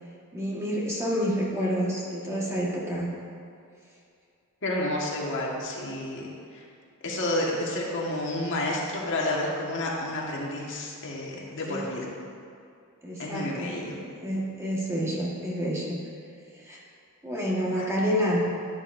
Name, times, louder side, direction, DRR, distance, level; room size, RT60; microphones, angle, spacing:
voice 1, 0.3-3.1 11.7-11.9 13.0-16.0 16.5-16.8 17.2-18.5, equal, 15° right, -5 dB, 1.6 m, -29 dB
voice 2, 4.6-6.6 7.0-12.1 13.2-13.9 17.7-17.9, left 1 dB, 55° left, -3 dB, 1.6 m, -30 dB
12.0 x 11.0 x 2.6 m, 2.4 s
head